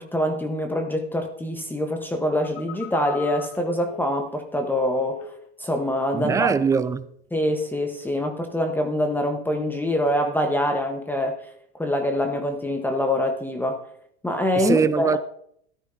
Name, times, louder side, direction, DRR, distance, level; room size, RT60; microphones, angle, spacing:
voice 1, 0.0-5.3 5.6-6.5 7.3-11.4 11.8-13.8 14.2-15.2, left 1 dB, 5° left, 1.1 m, -25 dB
Telephone, 2.4-5.5 5.7-6.4 6.7-7.0, left 6 dB, 85° left, 2.3 m, -39 dB
voice 2, 6.1-7.0 14.6-15.2, right 6 dB, 10° right, 0.4 m, -22 dB
14.0 x 12.5 x 2.7 m
hypercardioid pair, 115°, 34 cm